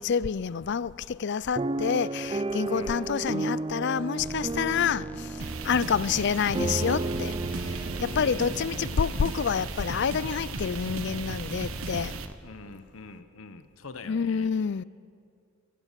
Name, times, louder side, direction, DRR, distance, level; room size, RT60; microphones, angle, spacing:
voice 1, 0.0-12.1 14.1-14.8, left 6 dB, 55° left, 0.5 m, -28 dB
sound 1, 1.5-9.7 10.3-10.4 10.6-10.9, right 2 dB, 25° right, 0.5 m, -33 dB
voice 2, 2.7-3.1 5.6-6.0 8.1-8.8 12.4-14.5, left 3 dB, 75° left, 1.1 m, -45 dB
sound 2, 4.2-12.4, equal, 10° left, 0.8 m, -43 dB
sound 3, 5.4-12.3, right 3 dB, 75° right, 1.2 m, -37 dB
23.5 x 18.0 x 7.5 m
head